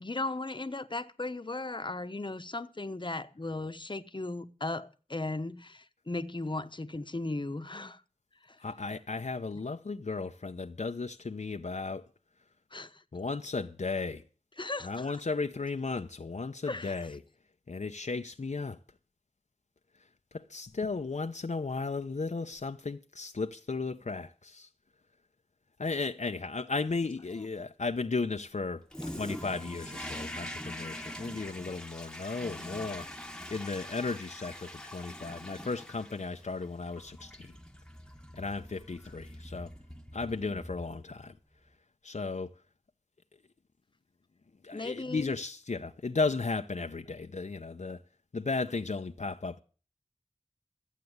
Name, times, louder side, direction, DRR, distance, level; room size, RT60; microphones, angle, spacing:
voice 1, 0.0-8.0 8.5-8.6 12.7-13.0 14.6-15.1 16.6-17.0 44.7-45.3, left 2 dB, 40° left, 1.0 m, -36 dB
voice 2, 8.6-12.1 13.1-14.2 14.8-17.2 17.7-18.8 20.3-24.7 25.8-33.1 33.5-37.6 38.3-39.7 40.1-41.3 42.0-42.5 44.6-48.0 48.3-49.6, left 4 dB, 65° left, 0.7 m, -35 dB
Toilet flush, 28.9-41.2, equal, 5° left, 1.2 m, -44 dB
14.0 x 8.3 x 7.9 m
wide cardioid pair, 55°, 13 cm